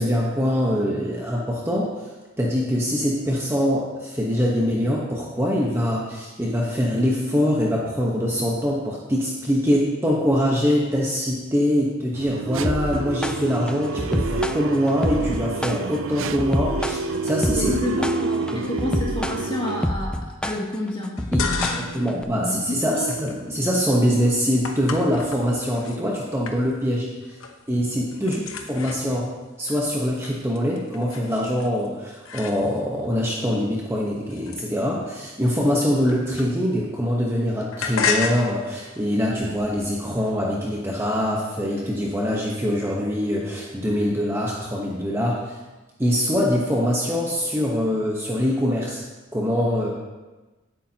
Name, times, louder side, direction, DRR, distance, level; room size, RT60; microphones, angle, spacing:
voice 1, 0.0-2.1 2.4-17.7 21.3-27.4 27.7-28.4 28.7-29.3 29.6-45.6 46.0-49.0 49.3-49.9, equal, 10° right, -3 dB, 1.1 m, -23 dB
sound 1, 12.1-19.9, right 4 dB, 65° right, 0.5 m, -28 dB
sound 2, 12.6-22.2, left 1 dB, 5° left, 0.3 m, -27 dB
voice 2, 17.6-22.6 22.9-23.1 28.2-28.4, left 1 dB, 25° left, -3 dB, 2.2 m, -30 dB
sound 3, 21.2-22.1 22.5-26.0 26.4-27.0 27.2-27.7 27.9-33.0 33.6-36.9 37.2-40.3, left 5 dB, 75° left, 1.0 m, -33 dB
17.5 x 8.7 x 2.9 m, 1.2 s
head